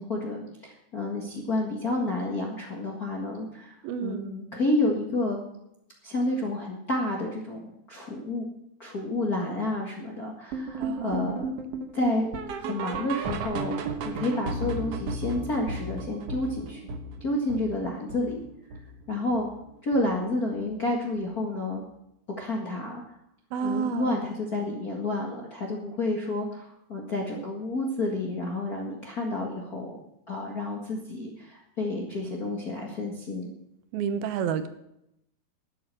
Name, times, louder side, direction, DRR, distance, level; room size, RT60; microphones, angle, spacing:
voice 1, 0.0-3.7 4.0-5.4 6.0-8.5 8.8-11.4 11.9-12.3 12.5-13.7 14.0-16.8 17.2-18.4 19.1-19.5 19.8-21.8 22.4-23.0 23.6-30.0 30.3-33.5, left 2 dB, 40° left, -1 dB, 1.3 m, -30 dB
voice 2, 3.8-4.3 10.8-11.4 23.5-24.2 33.9-34.7, right 7 dB, 80° right, 10 dB, 2.8 m, -30 dB
sound 1, 10.5-19.6 19.9-20.2 20.5-20.6 21.1-21.2 21.7-21.8, right 3 dB, 60° right, 1.7 m, -35 dB
12.0 x 8.7 x 7.5 m, 0.81 s
omnidirectional pair, 4.3 m